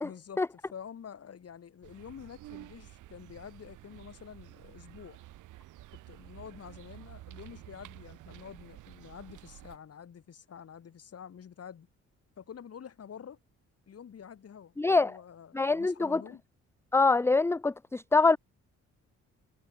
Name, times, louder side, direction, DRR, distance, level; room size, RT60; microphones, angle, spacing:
voice 1, 0.0-5.2 5.9-11.9 12.4-13.4 13.9-16.4, left 8 dB, 55° left, 7.8 m, -48 dB
sound 1, 1.8-9.8, right 16 dB, 90° right, 3.0 m, -51 dB
voice 2, 14.8-15.2 15.5-16.2 16.9-18.4, left 3 dB, 10° left, 0.5 m, -24 dB
cardioid pair, 90°, 30 cm